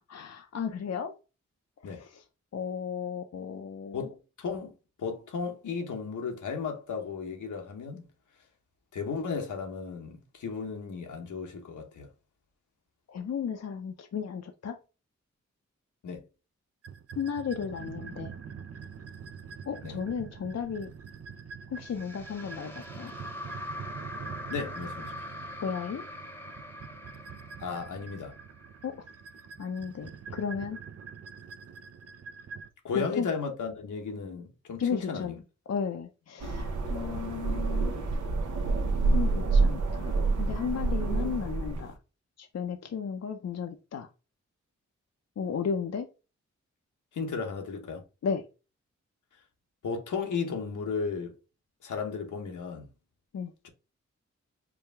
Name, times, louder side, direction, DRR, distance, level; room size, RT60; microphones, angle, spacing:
voice 1, 0.1-1.1 1.8-2.2 2.5-4.1 13.1-14.8 17.2-18.3 19.7-20.9 21.7-23.1 25.6-26.0 28.8-29.0 29.6-30.8 32.9-33.3 34.8-35.4 35.7-38.0 39.1-41.9 42.4-44.1 45.4-46.1 48.2-48.4 53.3-53.5, left 6 dB, 60° left, 0.6 m, -34 dB
voice 2, 3.9-4.7 5.0-8.1 8.9-12.1 16.0-16.2 19.8-20.0 24.5-25.1 27.6-28.3 32.8-35.4 36.8-37.0 47.1-48.0 49.8-51.3 51.8-52.9 53.6-53.7, left 5 dB, 85° left, 1.0 m, -35 dB
sound 1, 16.8-32.7, right 6 dB, 55° right, 0.6 m, -45 dB
sound 2, 21.8-29.1, left 1 dB, 5° left, 0.9 m, -43 dB
sound 3, 36.4-41.9, right 3 dB, 80° right, 0.9 m, -27 dB
4.7 x 2.3 x 3.3 m
cardioid pair, 45°, 29 cm